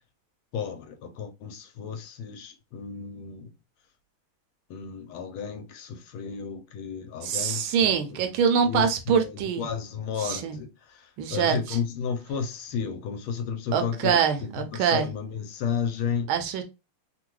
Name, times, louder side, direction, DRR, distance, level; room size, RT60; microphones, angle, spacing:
voice 1, 0.5-3.5 4.7-8.3 8.6-16.3, left 7 dB, 75° left, 1.4 m, -33 dB
voice 2, 7.2-9.6 10.2-10.6 11.2-11.6 13.7-15.1 16.3-16.6, right 7 dB, 80° right, 1.4 m, -24 dB
3.6 x 2.2 x 2.9 m
omnidirectional pair, 2.4 m